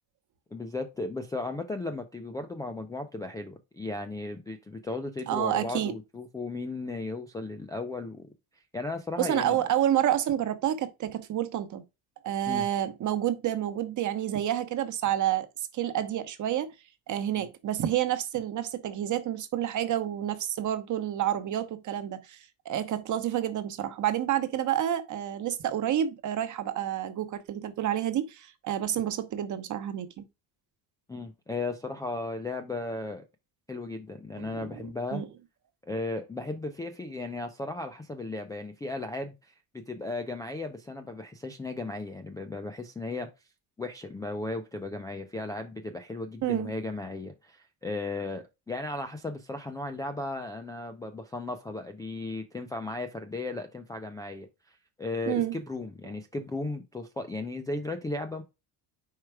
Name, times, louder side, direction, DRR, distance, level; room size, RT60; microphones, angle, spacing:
voice 1, 0.5-8.3 8.7-9.6 12.5-12.7 17.3-17.5 31.1-33.2 33.7-35.2 35.8-39.5 39.9-43.3 43.8-58.4, left 2 dB, 10° left, 0.4 m, -35 dB
voice 2, 5.3-5.9 9.2-11.8 12.2-15.5 15.7-16.7 17.1-22.4 22.6-30.3 34.4-35.3 46.4-46.7 55.3-55.5, right 11 dB, 40° right, 1.0 m, -29 dB
4.9 x 4.4 x 4.7 m
cardioid pair, 160°, 44 cm